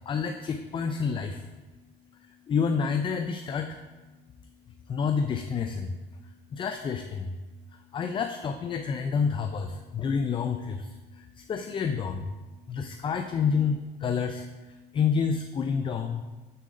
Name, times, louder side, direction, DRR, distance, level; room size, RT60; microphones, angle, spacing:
voice 1, 0.1-1.4 2.5-3.8 4.9-6.0 6.5-7.4 7.9-12.3 12.7-14.5 14.9-16.2, left 6 dB, 30° left, 7 dB, 0.3 m, -29 dB
6.5 x 3.8 x 5.1 m, 1.2 s
cardioid pair, 110°, 17 cm